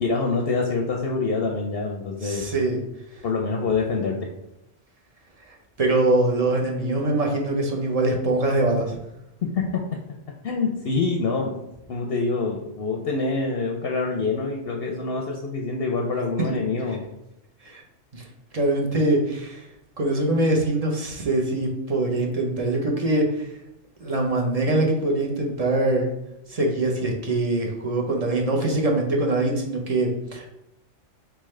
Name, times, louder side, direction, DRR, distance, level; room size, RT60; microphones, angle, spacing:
voice 1, 0.0-2.5 3.2-4.3 9.5-9.8 10.4-11.5 11.9-17.0, left 4 dB, 65° left, 1 dB, 0.7 m, -26 dB
voice 2, 2.2-2.8 3.1-3.2 5.8-9.0 17.6-17.8 18.1-18.2 18.5-19.6 20.0-23.5 24.0-26.1 26.5-30.5, right 2 dB, 40° right, 0 dB, 0.7 m, -23 dB
4.2 x 3.6 x 3.2 m, 0.85 s
omnidirectional pair, 1.2 m